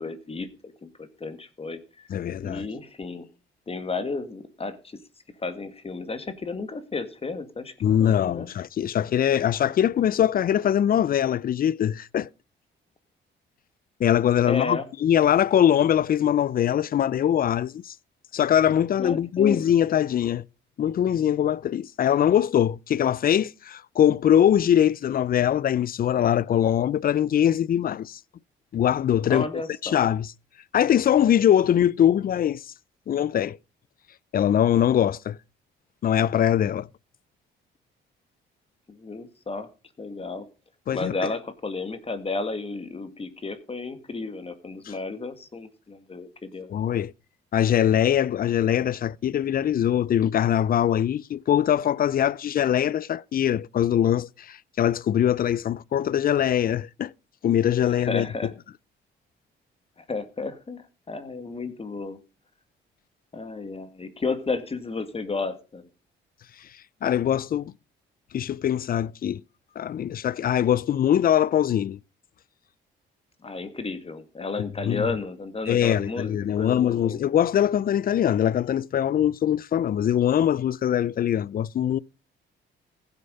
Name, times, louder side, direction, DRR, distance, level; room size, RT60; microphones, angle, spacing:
voice 1, 0.0-2.1 2.4-3.3 3.7-5.0 5.4-7.7 8.0-8.5 14.5-14.9 19.0-19.6 29.3-30.0 38.9-39.7 40.0-40.5 40.9-46.7 57.9-58.5 60.0-62.2 63.3-65.9 73.4-77.2, left 3 dB, 30° left, 2.0 m, -33 dB
voice 2, 2.1-2.7 7.8-12.3 14.0-17.9 18.3-20.4 20.8-28.2 28.7-29.5 29.8-30.3 30.7-32.6 33.1-33.6 34.3-35.4 36.0-36.9 40.9-41.1 44.9-45.0 46.7-47.1 47.5-57.1 57.4-58.3 67.0-67.7 68.3-69.4 69.8-72.0 74.6-75.1 75.7-82.0, left 10 dB, 45° left, 0.5 m, -22 dB
15.5 x 8.1 x 5.3 m
cardioid pair, 90°, 20 cm